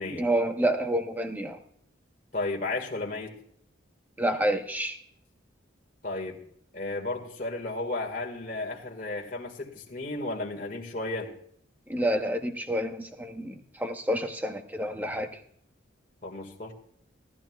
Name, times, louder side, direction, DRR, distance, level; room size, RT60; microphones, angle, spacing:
voice 1, 0.1-1.6 4.2-5.0 11.9-15.3, right 1 dB, 10° right, 5 dB, 1.0 m, -28 dB
voice 2, 2.3-3.4 6.0-6.4 6.7-11.3 16.2-16.7, left 2 dB, 45° left, 0 dB, 1.8 m, -33 dB
18.0 x 12.5 x 2.4 m, 0.65 s
head